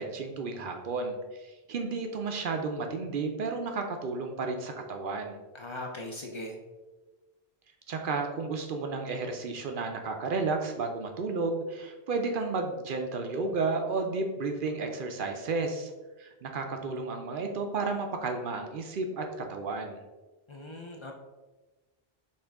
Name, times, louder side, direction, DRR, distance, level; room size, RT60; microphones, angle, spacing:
voice 1, 0.0-5.4 7.9-15.9 16.2-20.0, right 3 dB, 65° right, 4 dB, 0.7 m, -32 dB
voice 2, 5.5-6.6 20.5-21.1, left 1 dB, 50° left, 1 dB, 0.3 m, -39 dB
5.5 x 2.5 x 3.4 m, 1.2 s
omnidirectional pair, 1.1 m